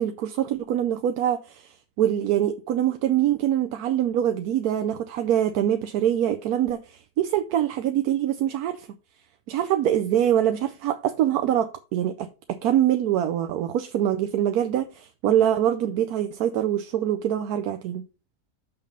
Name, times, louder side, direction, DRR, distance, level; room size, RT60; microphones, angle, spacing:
voice 1, 0.0-8.9 9.5-18.0, right 11 dB, 85° right, 1.1 m, -24 dB
6.0 x 5.7 x 5.2 m
omnidirectional pair, 1.6 m